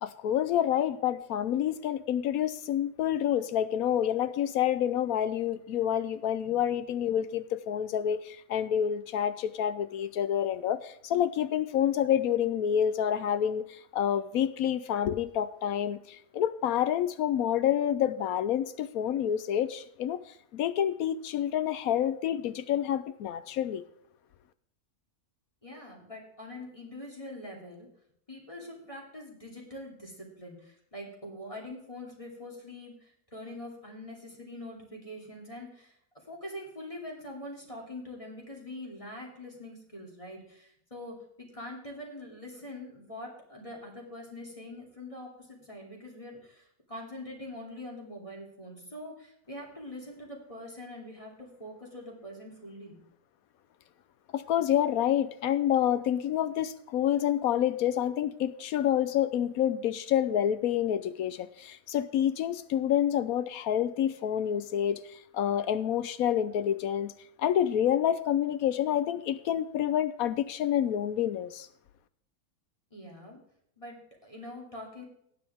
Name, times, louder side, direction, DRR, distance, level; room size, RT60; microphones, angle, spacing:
voice 1, 0.0-20.2 20.5-23.8 54.3-67.1 67.4-71.7, left 10 dB, 75° left, 13 dB, 1.1 m, -28 dB
voice 2, 25.6-27.9 28.3-35.9 36.3-53.0 72.9-73.4 73.8-75.0, left 1 dB, 20° left, -2 dB, 2.8 m, -44 dB
18.0 x 7.9 x 3.5 m, 0.71 s
omnidirectional pair, 1.6 m